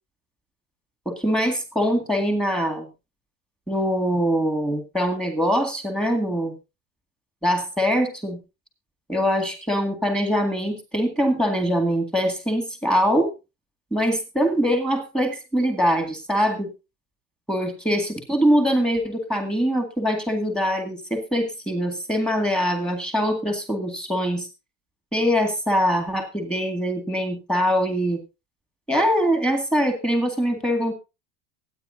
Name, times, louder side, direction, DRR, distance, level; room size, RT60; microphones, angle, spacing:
voice 1, 1.1-2.9 3.7-6.5 7.4-8.4 9.1-13.3 13.9-16.7 17.5-24.5 25.1-28.2 28.9-30.9, equal, ahead, 5 dB, 2.0 m, -23 dB
23.5 x 9.4 x 2.7 m, 0.28 s
supercardioid pair, 170°, 37 cm